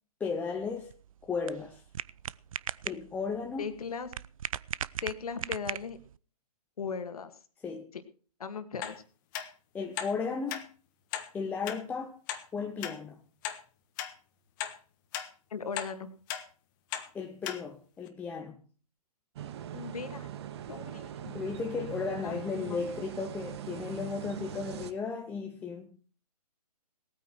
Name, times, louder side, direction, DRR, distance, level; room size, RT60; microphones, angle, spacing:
voice 1, 0.2-0.9 1.2-1.8 2.8-3.7 7.6-7.9 9.7-10.7 11.3-12.2 12.5-13.2 17.1-18.5 21.2-25.9, left 5 dB, 10° left, 0.8 m, -35 dB
sound 1, 0.5-6.2, right 9 dB, 55° right, 0.5 m, -39 dB
voice 2, 3.6-4.1 5.0-6.0 6.8-7.3 7.9-8.0 8.4-9.0 15.5-16.1 19.7-20.3 20.7-21.4 22.2-22.9, left 5 dB, 65° left, 2.1 m, -38 dB
sound 2, 8.8-9.0 9.3-9.5 10.0-10.1 10.5-10.6 11.1-11.3 11.7-11.8 12.3-12.4 12.8-12.9 13.4-13.6 14.0-14.1 14.6-14.8 15.1-15.3 15.8-15.9 16.3-16.4 16.9-17.1 17.4-17.6 18.1-18.2, left 10 dB, 30° left, 1.4 m, -36 dB
sound 3, 19.4-24.9, right 10 dB, 40° right, 1.2 m, -41 dB
19.0 x 9.2 x 4.6 m
figure-of-eight pair, 140°, 21 cm